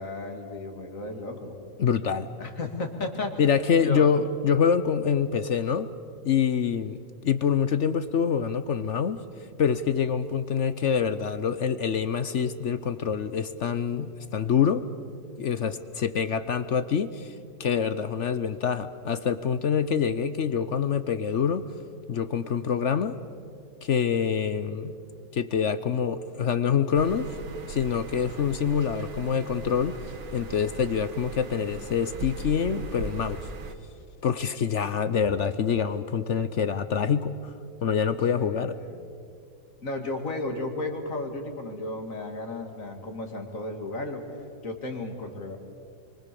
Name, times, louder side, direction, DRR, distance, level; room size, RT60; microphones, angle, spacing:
voice 1, 0.0-1.6 2.4-3.3 3.8-4.1 38.3-39.0 39.8-44.2 44.6-45.6, left 2 dB, 45° left, 4 dB, 2.6 m, -34 dB
voice 2, 1.8-2.3 3.4-5.9 6.2-7.0 7.2-9.2 9.6-14.8 15.4-17.3 17.6-21.7 22.1-23.2 23.8-25.0 25.3-27.3 27.7-30.0 30.3-33.4 34.2-37.3 37.8-38.8, left 7 dB, 60° left, 13 dB, 0.8 m, -25 dB
sound 1, 26.9-33.8, right 4 dB, 70° right, 2.1 m, -39 dB
27.0 x 24.5 x 6.9 m, 2.4 s
omnidirectional pair, 2.0 m